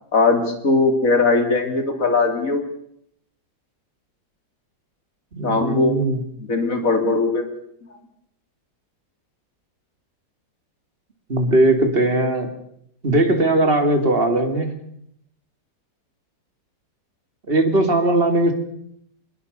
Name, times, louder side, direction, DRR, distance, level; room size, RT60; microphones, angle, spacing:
voice 1, 0.1-2.6 5.4-5.9 6.5-7.5, left 3 dB, 45° left, 5 dB, 3.6 m, -19 dB
voice 2, 5.3-6.2 11.3-12.5 13.0-14.7 17.5-18.5, right 2 dB, 30° right, 6 dB, 3.0 m, -19 dB
22.5 x 21.5 x 6.8 m, 0.72 s
omnidirectional pair, 2.0 m